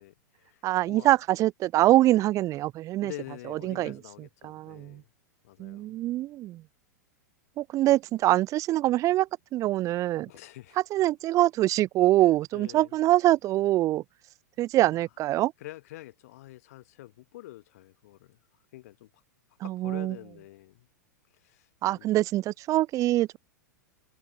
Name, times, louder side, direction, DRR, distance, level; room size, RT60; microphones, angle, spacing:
voice 1, 0.0-1.1 3.0-5.1 5.4-6.0 10.3-10.8 12.5-12.9 15.6-18.4 18.7-19.1 19.6-20.9 21.4-22.2, left 16 dB, 55° left, 4.9 m, -46 dB
voice 2, 0.6-3.1 3.5-4.0 4.4-5.0 5.6-6.6 7.6-10.3 10.9-14.0 14.6-15.5 19.6-20.2 21.8-23.4, right 15 dB, 35° right, 2.1 m, -24 dB
figure-of-eight pair, 95°, 9 cm